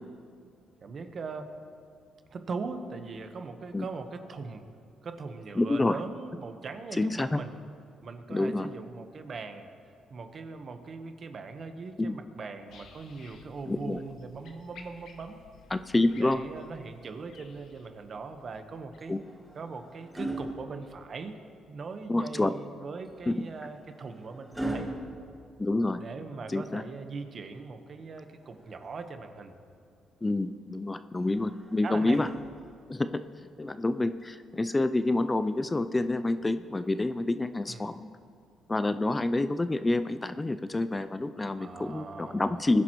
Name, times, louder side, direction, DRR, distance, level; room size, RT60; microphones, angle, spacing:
voice 1, 0.8-1.5 2.3-4.7 5.0-7.6 8.0-9.7 10.1-15.4 16.2-19.1 19.5-21.4 21.7-24.9 26.0-29.6 31.8-32.2 37.7-37.9 41.6-42.7, right 4 dB, 50° right, 7 dB, 1.1 m, -40 dB
voice 2, 5.6-5.9 7.0-7.4 8.3-8.7 12.0-12.2 13.7-14.0 15.7-16.4 19.1-19.2 22.1-22.5 23.3-23.4 25.6-26.0 26.5-26.8 30.2-32.3 32.9-33.2 33.6-38.1 38.7-42.8, left 2 dB, 20° left, 11 dB, 0.4 m, -28 dB
sound 1, 12.7-20.8 21.3-21.4, left 5 dB, 75° left, 1.3 m, -55 dB
sound 2, 19.0-21.5 23.1-26.2 28.0-29.2 31.2-33.0 34.2-34.4, right 1 dB, 5° right, 1.7 m, -41 dB
20.5 x 11.0 x 3.1 m, 2.3 s
cardioid pair, 90°, 0 cm